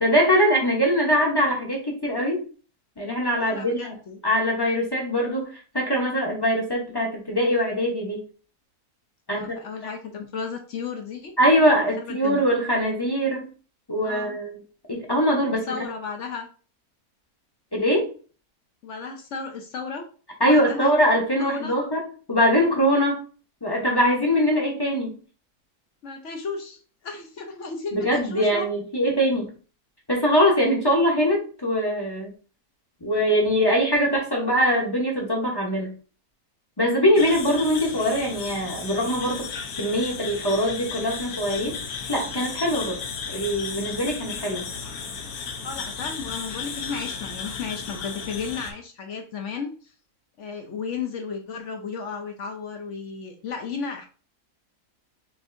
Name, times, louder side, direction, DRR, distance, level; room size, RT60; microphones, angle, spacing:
voice 1, 0.0-2.4 3.0-3.9 4.2-5.5 5.7-8.2 9.3-9.5 11.4-13.5 13.9-14.6 14.9-15.7 17.7-18.1 20.4-22.0 22.3-23.1 23.6-25.2 27.9-29.5 30.1-32.3 33.0-35.9 36.8-39.5 39.8-41.8 42.1-43.0 43.3-44.6, equal, 20° left, -1 dB, 0.7 m, -22 dB
voice 2, 3.4-4.2 9.3-11.3 12.0-12.4 14.0-14.4 15.7-16.5 18.8-20.0 20.4-20.9 21.4-21.8 23.0-23.1 26.0-28.7 37.2-37.3 45.6-49.7 50.4-54.1, left 5 dB, 60° left, 4 dB, 0.9 m, -34 dB
sound 1, 37.2-48.7, left 5 dB, 75° left, 1.2 m, -34 dB
6.2 x 2.7 x 2.5 m, 0.39 s
omnidirectional pair, 1.6 m